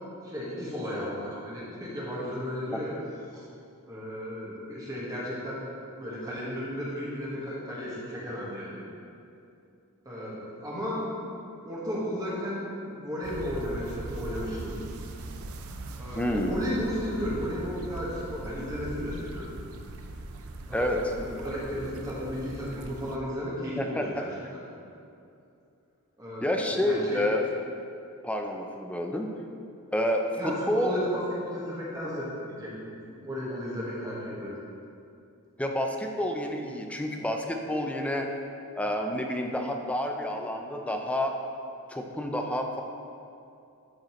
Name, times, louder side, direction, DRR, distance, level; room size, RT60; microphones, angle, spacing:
voice 1, 0.0-2.9 3.3-3.5 3.9-5.6 6.0-8.8 10.0-11.3 11.6-14.8 16.0-19.6 20.7-24.3 26.2-27.2 30.4-32.3 32.6-32.9 33.2-34.5, equal, 15° right, -7 dB, 1.5 m, -34 dB
sound 1, 13.2-23.2, right 2 dB, 70° right, 0.5 m, -40 dB
voice 2, 16.1-16.5 20.7-21.0 23.8-24.0 24.4-24.5 26.4-27.4 28.2-29.3 29.9-31.0 35.6-38.3 38.8-41.4 41.9-42.8, left 1 dB, 5° left, 3 dB, 0.5 m, -29 dB
11.0 x 5.2 x 3.1 m, 2.6 s
head